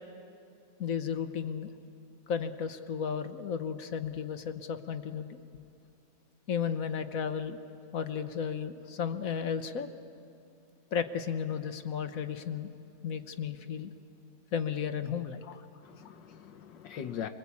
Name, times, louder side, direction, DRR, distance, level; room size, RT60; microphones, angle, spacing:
voice 1, 0.8-1.7 2.3-5.4 6.5-7.6 7.9-9.9 10.9-12.7 13.0-13.9 14.5-15.4, left 7 dB, 55° left, 1.3 m, -34 dB
voice 2, 15.4-17.3, left 9 dB, 85° left, 1.6 m, -41 dB
26.0 x 21.5 x 8.5 m
omnidirectional pair, 1.9 m